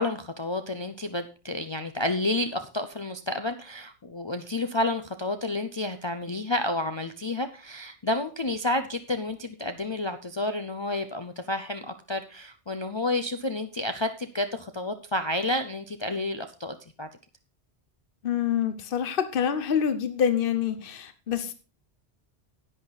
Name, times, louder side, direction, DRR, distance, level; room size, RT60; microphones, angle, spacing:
voice 1, 0.0-17.1, left 2 dB, 35° left, 0.5 m, -30 dB
voice 2, 18.2-21.5, left 8 dB, 55° left, 1.1 m, -26 dB
10.5 x 8.8 x 4.1 m
omnidirectional pair, 1.1 m